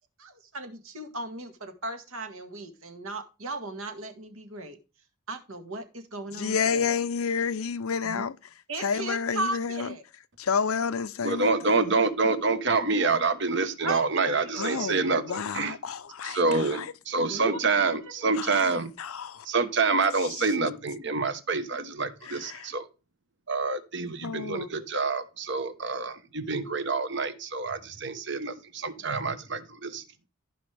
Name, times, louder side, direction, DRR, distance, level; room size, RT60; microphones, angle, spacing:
voice 1, 0.2-4.8 5.3-6.9 8.0-8.2 8.7-10.0 13.8-15.0 17.3-17.9, right 2 dB, 75° right, 1.9 m, -36 dB
voice 2, 6.3-8.3 8.8-9.9 10.4-11.5 14.6-16.4 16.7-16.9 18.4-18.6 19.0-19.5 22.5-22.7 24.2-24.7, left 6 dB, 80° left, 0.6 m, -29 dB
voice 3, 11.2-15.8 16.2-18.9 19.4-22.9 23.5-30.0, right 3 dB, 55° right, 1.1 m, -27 dB
14.5 x 5.5 x 3.4 m
head